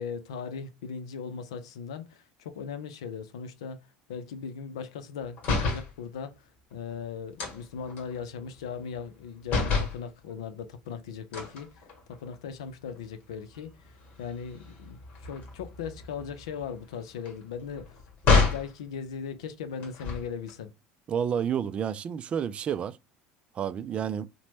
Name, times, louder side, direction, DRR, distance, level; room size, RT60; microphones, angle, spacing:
voice 1, 0.0-11.8 12.1-17.9 18.3-20.7, left 6 dB, 85° left, 0.4 m, -38 dB
sound 1, 5.4-5.9 7.4-9.2 9.5-10.0 11.3-12.4 12.9-13.1 13.4-18.7 19.8-20.5, left 4 dB, 60° left, 1.0 m, -30 dB
voice 2, 21.1-23.0 23.5-24.3, right 8 dB, 40° right, 0.3 m, -30 dB
2.9 x 2.1 x 3.2 m
hypercardioid pair, 80°, 3 cm